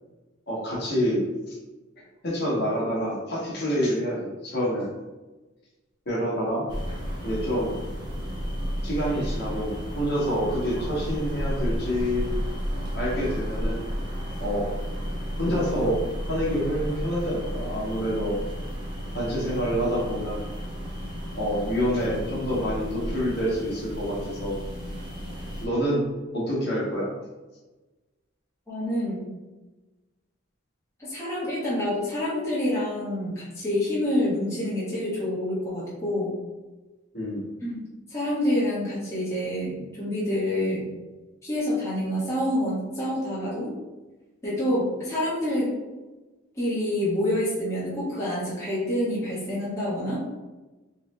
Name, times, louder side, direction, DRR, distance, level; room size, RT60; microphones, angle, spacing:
voice 1, 0.5-1.6 2.2-5.0 6.1-6.7 7.2-7.7 8.8-12.4 12.9-13.8 14.4-14.7 15.4-16.0 16.3-18.4 19.1-20.4 21.4-24.5 25.6-26.1 26.3-27.1 37.1-37.5, equal, 55° left, -5 dB, 1.3 m, -27 dB
sound 1, 6.7-25.7, equal, 20° right, 0.8 m, -33 dB
voice 2, 28.7-29.3 31.0-36.3 37.6-37.9 38.1-40.9 41.4-43.7 44.4-45.7 46.6-50.2, left 1 dB, 15° left, -9 dB, 1.1 m, -27 dB
3.6 x 3.1 x 3.2 m, 1.2 s
head